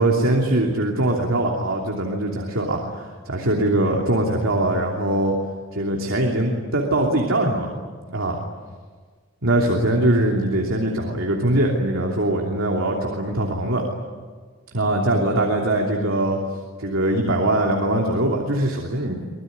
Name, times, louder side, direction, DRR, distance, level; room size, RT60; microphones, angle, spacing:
voice 1, 0.0-5.3 5.7-7.7 8.1-8.4 9.4-13.8 14.7-16.4 16.8-19.2, right 1 dB, 80° right, 0 dB, 3.0 m, -22 dB
25.0 x 20.5 x 9.5 m, 1.5 s
head